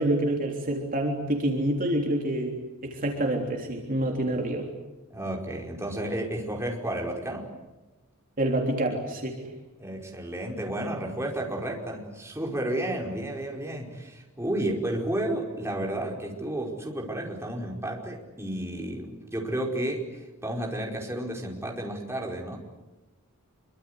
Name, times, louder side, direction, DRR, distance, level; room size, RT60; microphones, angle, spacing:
voice 1, 0.0-4.7 8.4-9.5, right 1 dB, 40° right, 2 dB, 3.6 m, -27 dB
voice 2, 5.1-7.5 9.8-22.6, right 1 dB, 10° right, 0 dB, 5.0 m, -32 dB
26.5 x 24.5 x 8.2 m, 1.1 s
head